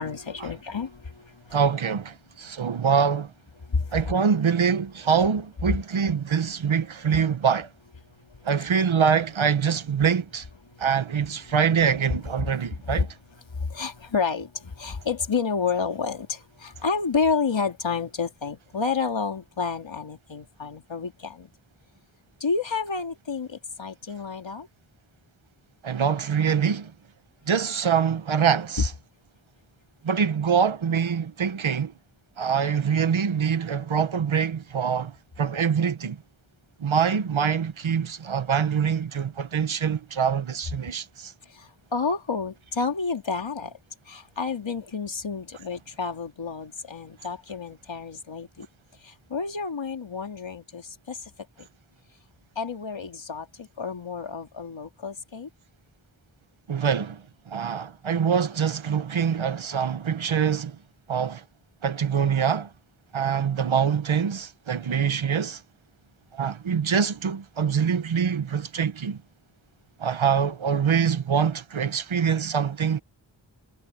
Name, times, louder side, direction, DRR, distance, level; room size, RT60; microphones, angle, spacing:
voice 1, 0.0-1.6 3.6-4.1 5.7-5.8 8.3-8.5 10.7-10.9 12.4-13.1 13.5-21.5 22.4-24.7 41.5-43.7 44.1-48.7 49.0-51.3 51.6-51.7 52.6-55.5, left 5 dB, 70° left, 2.8 m, -30 dB
voice 2, 1.5-3.3 3.9-7.7 8.4-10.4 10.8-13.1 25.8-26.9 27.5-28.9 30.0-31.9 32.4-36.2 36.8-41.3 56.7-57.2 57.5-60.8 61.1-61.4 61.8-62.7 63.1-65.6 66.3-69.2 70.0-73.0, right 7 dB, 90° right, 1.2 m, -24 dB
wide cardioid pair, 65°, 46 cm